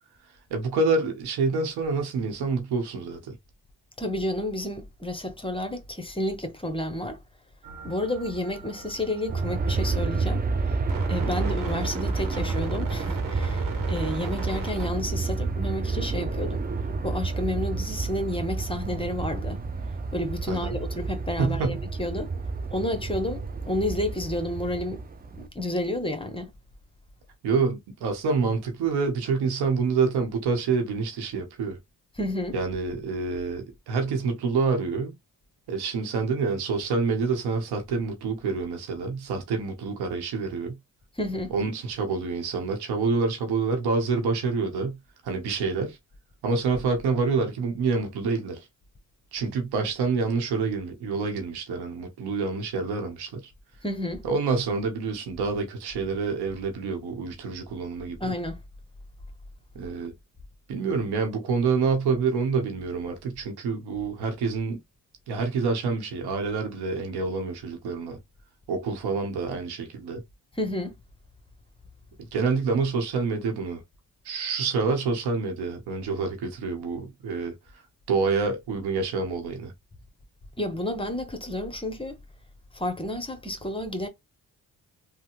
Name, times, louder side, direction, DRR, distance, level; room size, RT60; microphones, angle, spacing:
voice 1, 0.5-3.4 11.2-11.5 20.5-20.8 21.4-21.8 27.4-31.8 32.5-35.1 35.7-40.8 41.5-45.0 45.2-46.0 46.4-48.6 49.3-53.4 54.2-58.3 59.7-60.1 60.7-64.8 65.3-68.2 68.7-70.2 72.2-73.8 74.2-77.5 78.1-79.7, right 4 dB, 90° right, 1.0 m, -27 dB
voice 2, 4.0-7.2 7.8-10.8 11.0-16.6 17.0-19.6 20.1-22.3 22.7-25.0 25.4-26.5 32.2-32.6 41.2-41.5 53.8-54.2 58.2-58.6 70.5-70.9 80.6-82.2 82.7-84.1, left 1 dB, 15° left, 0.9 m, -31 dB
sound 1, 7.6-19.4 19.7-19.8 20.0-20.3 20.7-20.8, right 4 dB, 60° right, 1.1 m, -41 dB
Aircraft, 9.3-25.5, right 4 dB, 25° right, 0.5 m, -30 dB
3.2 x 2.2 x 3.0 m
supercardioid pair, 55°, 38 cm